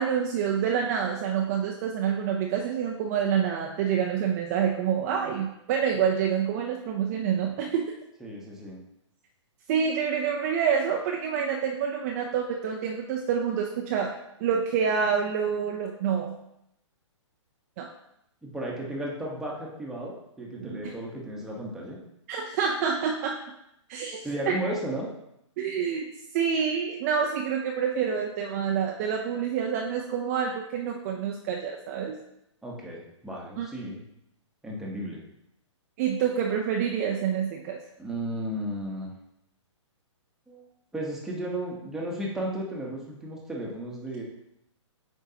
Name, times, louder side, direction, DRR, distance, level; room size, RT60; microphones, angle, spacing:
voice 1, 0.0-7.8 9.7-14.1 14.4-16.4 17.8-17.9 20.6-20.8 22.3-23.3 23.9-24.2 24.5-24.6 25.6-26.0 26.3-32.1 33.6-33.7 36.0-37.8, right 7 dB, 30° right, 1 dB, 0.5 m, -27 dB
voice 2, 8.2-8.8 18.4-22.0 24.2-25.1 32.6-34.0 34.6-35.2 38.0-39.1 40.5-40.7 40.9-44.2, right 1 dB, 5° right, -4 dB, 1.0 m, -34 dB
7.9 x 4.6 x 2.8 m, 0.80 s
hypercardioid pair, 155°, 16 cm